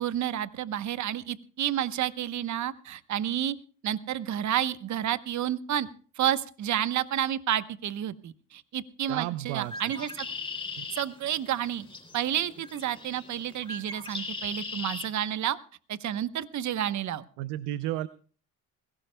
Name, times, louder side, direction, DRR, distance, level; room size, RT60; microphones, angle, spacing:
voice 1, 0.0-3.6 3.8-5.9 6.2-10.3 10.9-11.9 12.1-15.6 15.9-17.2, right 11 dB, 50° right, 13 dB, 1.0 m, -30 dB
voice 2, 9.1-9.7 10.8-10.9 17.4-18.1, right 14 dB, 85° right, 14 dB, 0.7 m, -32 dB
Bird, 9.6-15.1, left 3 dB, 15° left, 3.4 m, -39 dB
21.5 x 17.0 x 2.2 m, 0.41 s
supercardioid pair, 85°, 37 cm